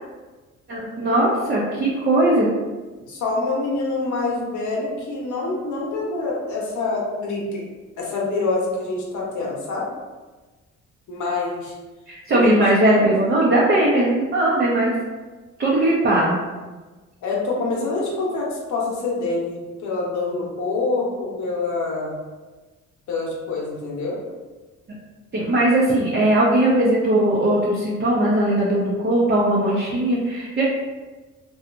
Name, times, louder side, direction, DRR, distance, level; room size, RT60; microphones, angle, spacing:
voice 1, 0.7-2.5 12.1-14.9 15.6-16.4 25.3-30.6, right 1 dB, 35° right, -6 dB, 0.6 m, -19 dB
voice 2, 3.1-7.6 8.0-9.9 11.1-11.7 12.3-13.3 17.2-22.1 23.1-24.2, left 3 dB, 75° left, -3 dB, 0.9 m, -26 dB
2.8 x 2.3 x 2.4 m, 1.3 s
cardioid pair, 90°, 30 cm